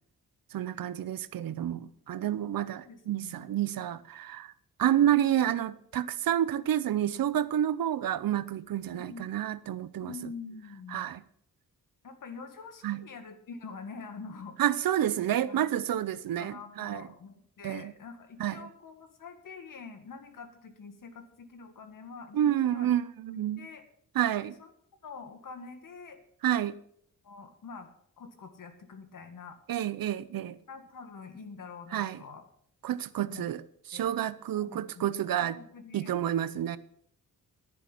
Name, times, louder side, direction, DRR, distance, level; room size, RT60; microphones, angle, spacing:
voice 1, 0.5-4.5 4.8-10.1 10.9-11.2 12.8-13.0 14.6-17.0 17.6-17.9 18.4-18.6 22.3-23.7 24.1-24.5 26.4-26.7 29.7-30.6 31.9-32.2 32.8-33.6 33.9-35.6 35.9-36.8, right 11 dB, 75° right, 0.7 m, -29 dB
voice 2, 2.9-3.6 4.9-5.1 8.9-9.3 10.0-11.1 12.0-14.9 15.5-15.7 16.4-22.9 23.3-23.8 24.6-24.7 25.0-26.2 27.2-27.9 28.2-29.6 30.7-32.5 33.3-33.4 33.9-34.1 34.5-36.2, left 4 dB, 65° left, 1.9 m, -46 dB
11.0 x 9.8 x 5.7 m
wide cardioid pair, 110°, 35 cm